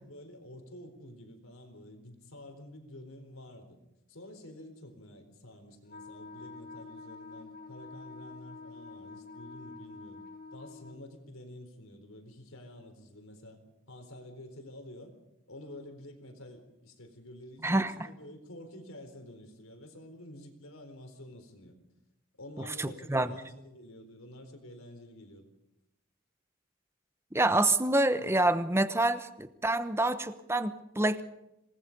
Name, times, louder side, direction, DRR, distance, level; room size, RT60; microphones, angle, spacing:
voice 1, 0.0-3.8 4.1-10.2 10.5-13.6 13.9-15.1 15.5-21.8 22.4-25.5, left 1 dB, 85° left, 7 dB, 4.3 m, -49 dB
Wind instrument woodwind instrument, 5.9-11.0, left 3 dB, 45° left, 2.2 m, -47 dB
voice 2, 17.6-18.1 22.6-23.3 27.3-31.2, right 2 dB, 10° right, 11 dB, 1.0 m, -27 dB
26.5 x 19.5 x 5.4 m, 0.88 s
head